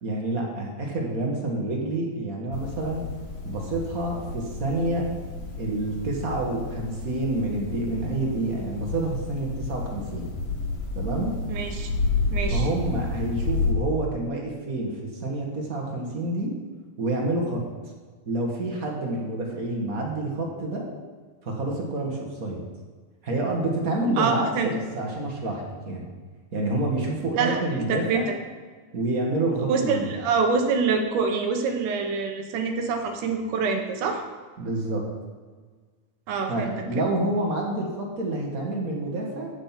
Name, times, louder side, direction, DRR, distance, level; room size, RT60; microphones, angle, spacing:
voice 1, 0.0-3.0 3.4-5.1 5.6-10.3 10.9-11.3 12.5-16.5 17.0-17.6 18.3-20.8 21.4-22.6 23.2-26.0 26.5-28.3 28.9-30.1 34.6-35.0 36.5-39.5, right 2 dB, 40° right, -1 dB, 1.2 m, -28 dB
sound 1, 2.5-13.7, left 3 dB, 50° left, 2.2 m, -31 dB
voice 2, 11.5-11.9 12.3-12.7 24.2-24.7 27.3-27.6 27.9-28.2 29.7-34.2 36.3-36.8, right 5 dB, 70° right, 5 dB, 2.2 m, -25 dB
15.0 x 5.2 x 5.9 m, 1.5 s
omnidirectional pair, 4.2 m